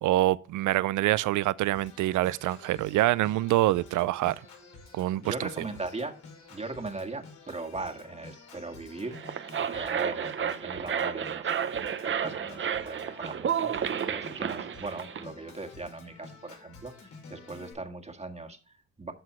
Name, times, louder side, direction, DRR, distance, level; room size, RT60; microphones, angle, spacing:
voice 1, 0.0-4.4 4.9-5.5, right 15 dB, 80° right, 0.5 m, -26 dB
Organ, 1.7-17.7, left 4 dB, 70° left, 4.7 m, -50 dB
voice 2, 5.2-6.2 6.5-19.1, right 3 dB, 20° right, 1.7 m, -39 dB
sound 1, 9.0-15.2, right 8 dB, 40° right, 0.7 m, -31 dB
12.0 x 6.1 x 3.1 m
cardioid pair, 90°, 30 cm